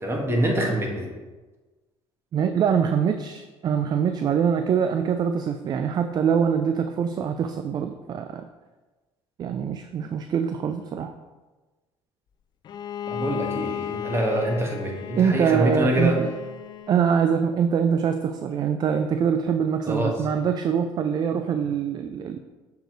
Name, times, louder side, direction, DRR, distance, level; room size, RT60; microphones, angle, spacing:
voice 1, 0.0-1.1 13.1-16.2 19.9-20.1, right 1 dB, 25° right, 0 dB, 1.5 m, -25 dB
voice 2, 2.3-8.5 9.4-11.1 15.2-16.3 16.9-22.4, right 7 dB, 40° right, 8 dB, 0.4 m, -24 dB
Bowed string instrument, 12.7-17.4, left 10 dB, 45° left, 0.4 m, -34 dB
6.5 x 4.8 x 3.9 m, 1.2 s
cardioid pair, 105°, 11 cm